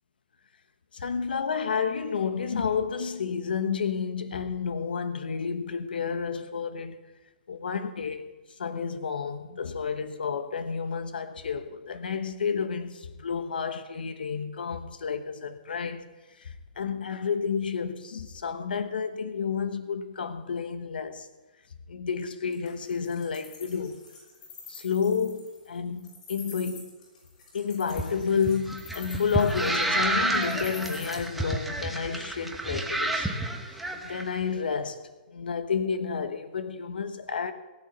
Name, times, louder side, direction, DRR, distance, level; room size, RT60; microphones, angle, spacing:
voice 1, 0.9-7.0 7.5-8.3 8.6-16.1 16.4-21.3 21.9-24.0 24.7-26.9 27.5-33.3 34.0-37.5, left 6 dB, 80° left, 1.2 m, -30 dB
Wild animals, 22.5-31.1, left 5 dB, 55° left, 6.3 m, -46 dB
sound 1, 27.9-34.2, right 2 dB, ahead, 1.0 m, -30 dB
17.0 x 6.9 x 8.0 m
hypercardioid pair, 155°, 5 cm